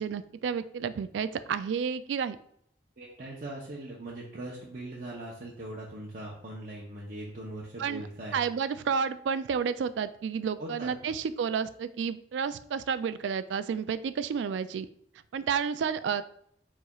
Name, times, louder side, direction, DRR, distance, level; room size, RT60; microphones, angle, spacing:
voice 1, 0.0-2.4 7.8-8.1 8.3-14.9 15.3-16.2, right 6 dB, 90° right, 13 dB, 0.3 m, -31 dB
voice 2, 3.0-8.4 10.6-11.1, right 1 dB, 50° right, -5 dB, 0.7 m, -40 dB
4.7 x 4.1 x 2.4 m, 0.67 s
head